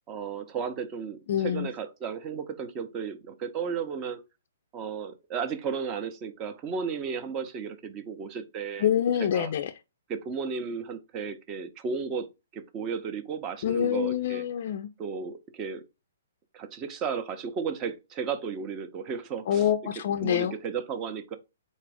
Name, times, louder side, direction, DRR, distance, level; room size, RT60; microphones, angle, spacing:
voice 1, 0.1-4.2 4.7-8.9 9.3-9.5 10.1-12.3 12.5-14.4 15.0-15.8 16.5-19.6 20.2-21.4, right 6 dB, 25° right, 0.6 m, -34 dB
voice 2, 1.3-1.7 8.8-9.7 13.6-14.9 19.5-20.5, left 9 dB, 55° left, 0.3 m, -26 dB
4.1 x 2.5 x 4.7 m
hypercardioid pair, 145°, 0 cm